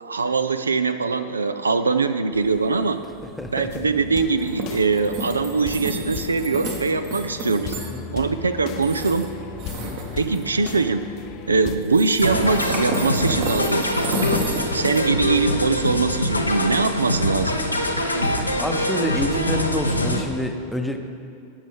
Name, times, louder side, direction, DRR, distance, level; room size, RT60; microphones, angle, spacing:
voice 1, 0.0-3.0 3.5-7.7 8.1-9.3 10.1-11.1 11.5-14.1 14.7-17.6, right 4 dB, 75° right, 11 dB, 0.4 m, -22 dB
sound 1, 2.3-18.7, right 2 dB, 50° right, 1.3 m, -33 dB
voice 2, 3.4-3.8 7.9-8.0 9.8-10.0 18.6-21.0, equal, 5° left, 4 dB, 0.8 m, -28 dB
sound 2, 3.7-11.8, left 8 dB, 40° left, 0.6 m, -36 dB
sound 3, 12.2-20.2, left 1 dB, 85° left, 0.8 m, -24 dB
18.0 x 6.3 x 3.5 m, 2.5 s
figure-of-eight pair, 90°, 0 cm